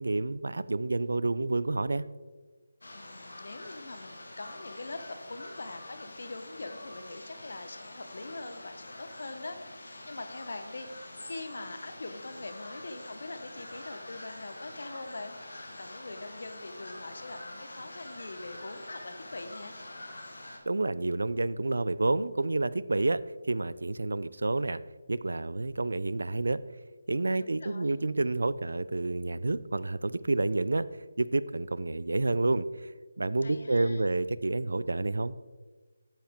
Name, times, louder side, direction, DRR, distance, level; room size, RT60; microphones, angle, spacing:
voice 1, 0.0-2.1 20.7-23.2 23.5-24.8 25.1-26.6 27.1-30.9 31.2-32.7 33.2-35.4, right 2 dB, 80° right, 16 dB, 0.3 m, -29 dB
sound 1, 2.8-20.6, left 1 dB, 85° left, 1.7 m, -46 dB
voice 2, 2.9-19.8 27.4-28.0 33.4-34.1, left 2 dB, 65° left, 8 dB, 0.8 m, -43 dB
8.7 x 7.5 x 3.5 m, 1.4 s
figure-of-eight pair, 170°, 0 cm